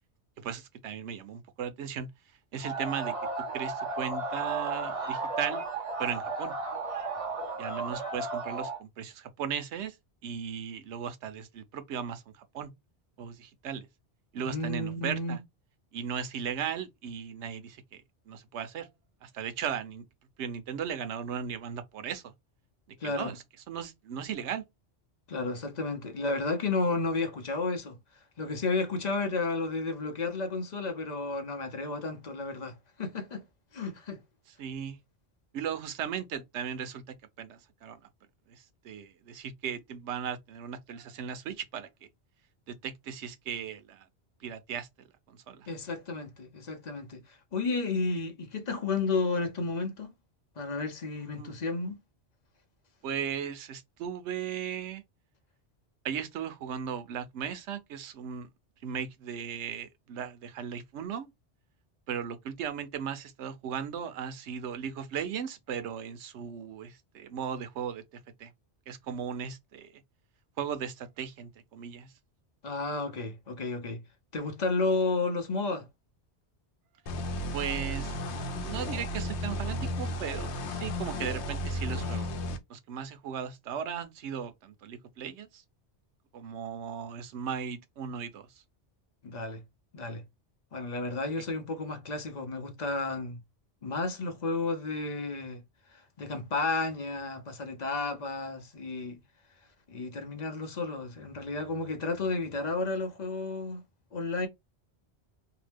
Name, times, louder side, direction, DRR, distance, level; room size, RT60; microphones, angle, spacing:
voice 1, 0.4-2.1 2.5-3.1 3.5-5.6 6.0-6.5 7.6-10.0 10.2-12.7 13.2-13.9 14.3-15.4 15.9-18.9 19.2-20.0 20.4-22.3 23.0-24.6 34.6-35.0 35.5-38.0 38.5-41.9 42.7-44.1 44.4-45.7 51.4-51.5 53.0-55.0 56.0-58.5 58.8-61.3 62.1-68.0 68.4-68.5 68.9-70.0 70.6-72.1 77.5-82.3 82.7-85.6 86.3-88.5, right 8 dB, 85° right, 0.9 m, -37 dB
sound 1, 2.6-8.8, right 3 dB, 35° right, 0.8 m, -34 dB
voice 2, 14.4-15.4 23.0-23.3 25.3-28.0 28.4-33.4 33.7-34.2 45.7-50.1 50.6-52.0 72.6-74.0 74.3-75.9 89.2-89.6 89.9-90.2 90.7-93.4 93.8-95.6 95.9-99.2 99.9-103.8 104.1-104.5, left 3 dB, 45° left, 0.7 m, -32 dB
sound 2, 77.1-82.6, equal, 80° left, 0.9 m, -34 dB
2.8 x 2.1 x 3.3 m
omnidirectional pair, 1.1 m